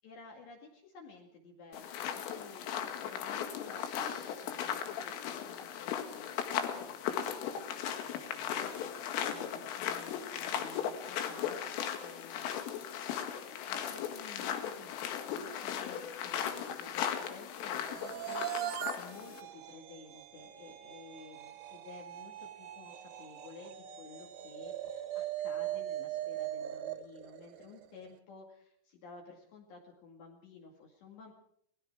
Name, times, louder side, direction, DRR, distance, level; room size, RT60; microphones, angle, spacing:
voice 1, 0.0-13.1 13.6-31.3, left 4 dB, 65° left, -1 dB, 4.3 m, -53 dB
sound 1, 1.7-19.4, left 9 dB, 85° left, 4.3 m, -37 dB
sound 2, 17.8-28.0, right 12 dB, 70° right, 2.2 m, -41 dB
29.5 x 19.5 x 4.8 m, 0.67 s
omnidirectional pair, 5.7 m